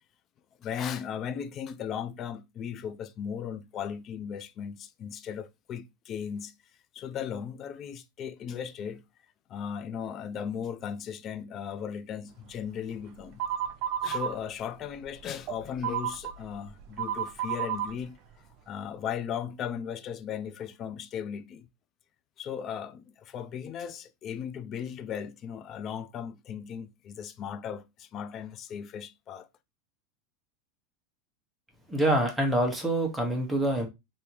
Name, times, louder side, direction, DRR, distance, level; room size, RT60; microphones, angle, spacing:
voice 1, 0.6-6.5 6.9-9.0 9.5-13.4 14.0-18.2 18.7-21.7 22.4-29.5, left 8 dB, 35° left, 0.3 m, -37 dB
sound 1, 13.4-14.3 14.9-17.9, right 9 dB, 45° right, 0.6 m, -31 dB
voice 2, 31.9-33.9, right 1 dB, 5° right, 0.9 m, -26 dB
3.4 x 2.6 x 2.9 m
supercardioid pair, 140°, 0 cm